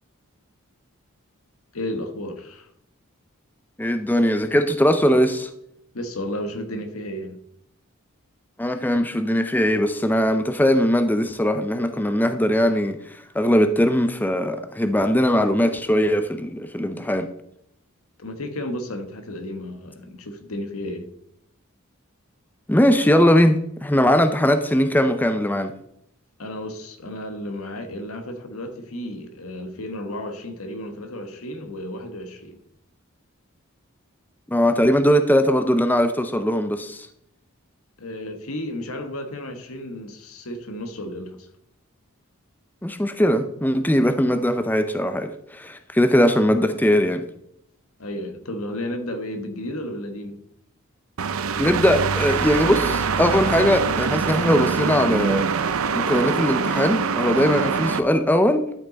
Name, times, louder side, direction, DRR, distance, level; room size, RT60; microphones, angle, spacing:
voice 1, 1.7-2.7 5.9-7.4 18.2-21.1 26.4-32.6 38.0-41.5 48.0-50.4, left 1 dB, 85° left, 1.5 m, -33 dB
voice 2, 3.8-5.5 8.6-13.0 13.3-17.3 22.7-25.7 34.5-37.1 42.8-47.2 51.6-55.5 55.9-58.7, equal, 10° left, 0.5 m, -20 dB
sound 1, 51.2-58.0, right 5 dB, 75° right, 0.6 m, -24 dB
12.0 x 5.8 x 4.0 m
head